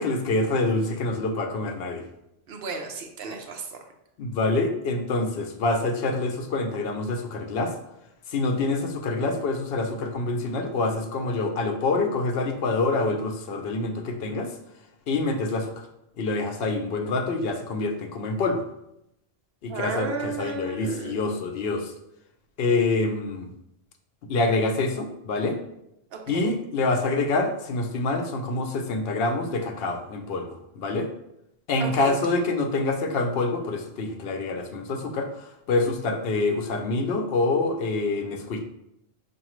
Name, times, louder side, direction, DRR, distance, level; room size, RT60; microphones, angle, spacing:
voice 1, 0.0-2.0 4.2-7.7 8.3-14.5 15.1-15.7 16.2-18.6 19.6-21.9 22.6-23.5 24.3-25.6 26.3-30.5 30.8-31.1 31.7-38.6, left 3 dB, 70° left, 4 dB, 0.8 m, -26 dB
voice 2, 2.5-3.7 19.7-21.2 26.1-26.5 31.8-32.2, right 4 dB, 70° right, 4 dB, 0.9 m, -33 dB
4.7 x 2.5 x 3.0 m, 0.81 s
omnidirectional pair, 1.1 m